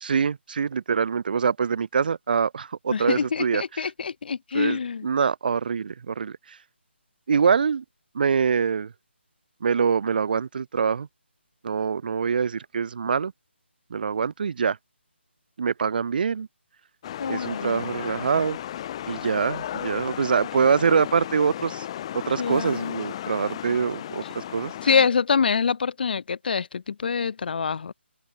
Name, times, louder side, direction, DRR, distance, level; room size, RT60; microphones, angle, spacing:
voice 1, 0.0-3.6 4.5-6.4 7.3-7.8 8.1-8.9 9.6-11.1 11.6-13.3 13.9-14.8 15.6-16.5 17.3-18.6 19.1-21.9 22.1-24.7, right 6 dB, 50° right, 0.5 m, -24 dB
voice 2, 2.9-5.1 17.2-17.9 22.4-23.1 24.8-27.9, left 6 dB, 50° left, 0.4 m, -25 dB
sound 1, 17.0-25.1, left 11 dB, 30° left, 0.7 m, -35 dB
figure-of-eight pair, 155°, 6 cm